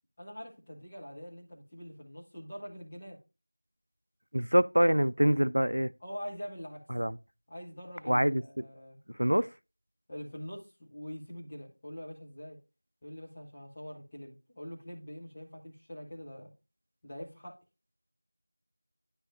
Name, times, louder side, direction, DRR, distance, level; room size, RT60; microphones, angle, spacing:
voice 1, 0.2-3.2 6.0-6.8 7.5-9.0 10.1-12.6 13.0-16.5 17.0-17.5, equal, 10° left, 0.6 m, -44 dB
voice 2, 4.3-5.9 6.9-7.2 8.1-8.6 9.1-9.5, equal, 85° right, 0.4 m, -25 dB
9.6 x 5.7 x 2.5 m
figure-of-eight pair, 180°, 0 cm